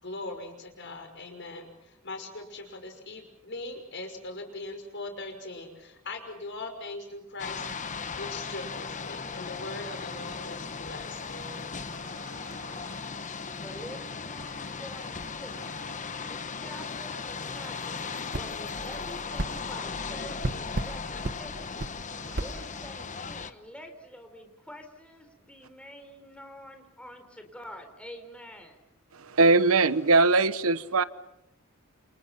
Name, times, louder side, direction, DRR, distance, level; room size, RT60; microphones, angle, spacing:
voice 1, 0.0-7.7 8.2-11.8, left 2 dB, 55° left, 5.9 m, -40 dB
sound 1, 7.4-23.5, left 5 dB, 35° left, 1.1 m, -37 dB
voice 2, 11.9-12.9 22.1-22.4 29.1-31.0, right 3 dB, 80° right, 1.1 m, -23 dB
voice 3, 13.6-15.8 16.2-18.0 18.4-21.9 22.4-28.8, equal, 5° left, 4.2 m, -47 dB
sound 2, 18.3-18.5 19.4-19.5 20.4-20.9 21.2-21.4 21.8-21.9 22.4-22.5, right 1 dB, 45° right, 1.2 m, -31 dB
29.0 x 29.0 x 5.9 m
head